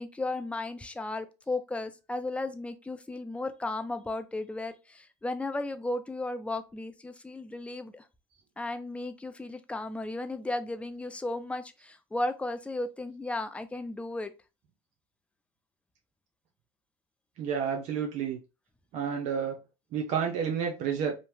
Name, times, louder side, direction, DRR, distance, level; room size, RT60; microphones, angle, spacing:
voice 1, 0.0-8.0 8.6-14.3, left 2 dB, 10° left, 0.4 m, -35 dB
voice 2, 17.4-18.4 18.9-19.6 19.9-21.2, right 7 dB, 60° right, 0.6 m, -30 dB
2.8 x 2.1 x 3.1 m
supercardioid pair, 105°, 13 cm